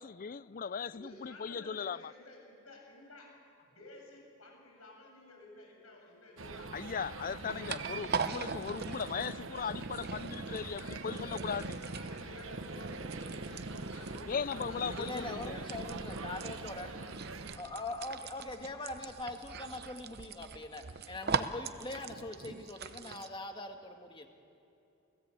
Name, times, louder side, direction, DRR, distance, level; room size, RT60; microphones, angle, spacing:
voice 1, 0.0-2.1 6.7-11.8 14.3-15.6, left 6 dB, 40° left, 0.4 m, -38 dB
voice 2, 0.9-3.3 3.6-6.9 7.3-8.5 10.5-16.5 16.7-17.1, left 2 dB, 85° left, 7.4 m, -53 dB
sound 1, 6.4-17.6, right 4 dB, 65° right, 1.2 m, -45 dB
sound 2, 7.1-23.3, right 4 dB, 50° right, 0.8 m, -41 dB
voice 3, 15.0-16.9 17.6-24.3, left 2 dB, 25° left, 1.7 m, -42 dB
29.5 x 16.5 x 8.4 m
head